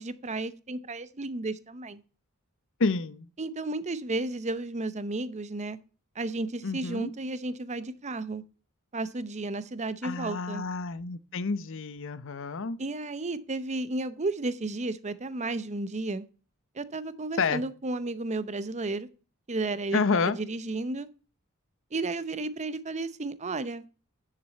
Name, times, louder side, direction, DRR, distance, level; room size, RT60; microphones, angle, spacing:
voice 1, 0.0-2.0 3.4-5.8 6.2-8.4 8.9-10.6 12.8-16.2 16.7-19.1 19.5-21.1 21.9-23.8, right 2 dB, 30° right, 0.7 m, -33 dB
voice 2, 2.8-3.3 6.6-7.1 10.0-12.8 17.4-17.6 19.9-20.4, left 4 dB, 60° left, 0.7 m, -29 dB
10.0 x 6.8 x 4.1 m
head